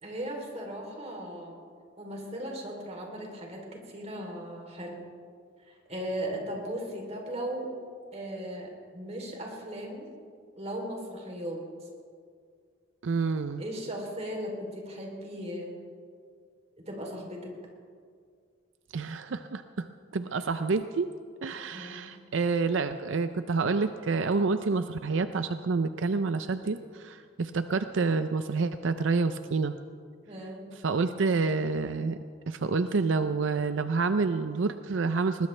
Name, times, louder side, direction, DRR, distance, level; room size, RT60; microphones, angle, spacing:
voice 1, 0.0-1.6 2.0-5.0 5.7-7.7 8.1-10.1 10.6-11.6 13.6-15.7 16.9-17.5 21.7-22.1 30.3-30.7, equal, 35° right, 1 dB, 3.3 m, -37 dB
voice 2, 13.0-13.6 18.9-19.9 20.1-21.1 21.4-29.7 30.8-32.2 32.5-35.5, right 4 dB, 85° right, 10 dB, 0.5 m, -28 dB
21.0 x 20.0 x 3.3 m, 2.2 s
head